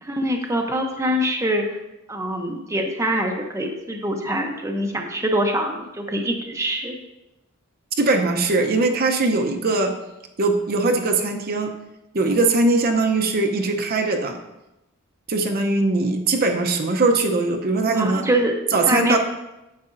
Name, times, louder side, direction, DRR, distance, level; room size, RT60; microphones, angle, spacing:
voice 1, 0.0-1.8 2.1-7.0 17.9-18.6 18.9-19.2, right 1 dB, 15° right, 2 dB, 0.7 m, -24 dB
voice 2, 8.0-9.9 10.4-11.7 12.1-14.4 15.3-18.2 18.7-19.2, right 3 dB, 45° right, 4 dB, 0.7 m, -20 dB
9.6 x 7.2 x 2.6 m, 0.95 s
head